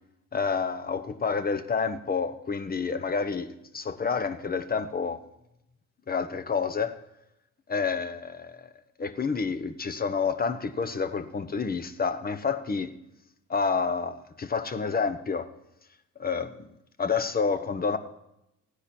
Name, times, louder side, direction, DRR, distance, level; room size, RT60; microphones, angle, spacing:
voice 1, 0.3-3.5 3.7-5.2 6.1-7.0 7.7-8.7 9.0-12.9 13.5-15.5 16.2-16.5 17.0-18.0, left 5 dB, 30° left, 1.0 m, -29 dB
15.5 x 9.9 x 4.4 m
cardioid pair, 90°, 30 cm